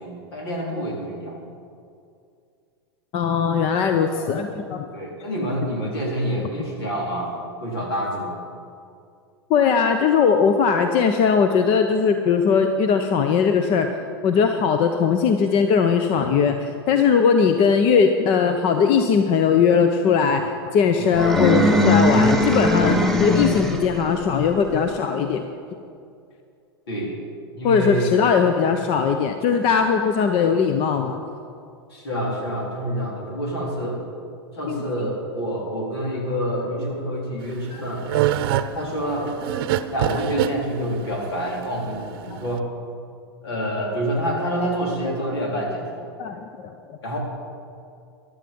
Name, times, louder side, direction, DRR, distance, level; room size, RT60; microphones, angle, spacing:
voice 1, 0.0-1.4 4.1-4.3 4.9-7.3 7.6-8.4 21.0-21.2 26.9-27.1 27.5-28.1 31.9-34.0 34.5-38.1 38.7-39.3 39.9-42.7 43.4-46.1 47.0-47.2, equal, 80° left, -1 dB, 3.8 m, -27 dB
voice 2, 3.1-4.9 9.5-13.9 14.2-25.5 27.6-31.2 34.7-34.8 37.7-37.8 38.5-38.6 40.1-40.2 42.3-42.4 46.2-46.4 46.9-47.0, left 6 dB, 45° left, 7 dB, 0.9 m, -19 dB
sound 1, 21.1-24.0, left 1 dB, 5° left, 1.2 m, -19 dB
sound 2, 37.4-42.6, right 12 dB, 65° right, 0.7 m, -25 dB
14.5 x 11.5 x 5.4 m, 2.4 s
hypercardioid pair, 100°, 13 cm